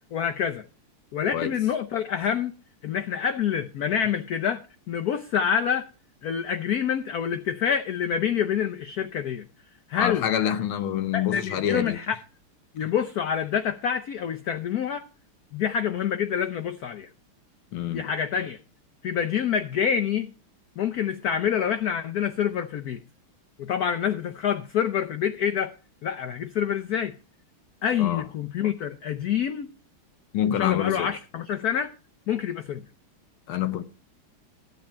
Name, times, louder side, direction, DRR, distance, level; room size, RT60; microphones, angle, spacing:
voice 1, 0.1-0.6 1.1-2.5 2.8-4.6 4.9-5.9 6.2-9.4 9.9-10.3 11.1-12.2 12.7-15.0 15.5-17.1 17.9-18.6 19.0-20.3 20.8-23.0 23.6-25.7 26.0-27.2 27.8-29.7 30.5-31.9 32.3-32.8, left 8 dB, 90° left, 0.8 m, -27 dB
voice 2, 10.0-12.0 17.7-18.0 28.0-28.2 30.3-31.1 33.5-33.8, left 10 dB, 75° left, 1.7 m, -26 dB
13.0 x 8.6 x 4.4 m
omnidirectional pair, 2.4 m